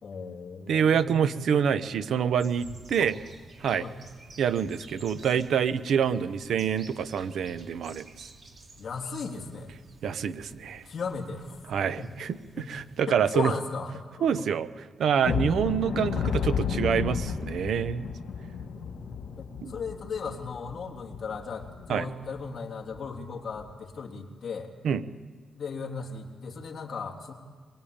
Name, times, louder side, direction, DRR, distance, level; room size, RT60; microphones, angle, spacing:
voice 1, 0.0-1.5 3.0-3.1 3.8-4.0 8.7-9.7 10.8-11.6 12.0-12.3 12.6-12.7 13.1-14.5 19.4-24.7 25.5-27.3, left 5 dB, 45° left, 1 dB, 3.2 m, -36 dB
voice 2, 0.7-3.1 3.6-3.9 4.4-8.3 10.0-10.8 11.7-13.5 14.2-14.7 15.0-18.1 19.6-19.7 21.9-22.1 24.8-25.0, right 7 dB, 70° right, 12 dB, 0.9 m, -26 dB
sound 1, 2.4-13.0, right 2 dB, 40° right, 2.7 m, -51 dB
sound 2, 15.2-21.9 22.3-22.5 22.9-23.0 23.5-23.7, left 6 dB, 85° left, 2.4 m, -32 dB
23.5 x 23.0 x 8.8 m, 1.5 s
wide cardioid pair, 155°, 0 cm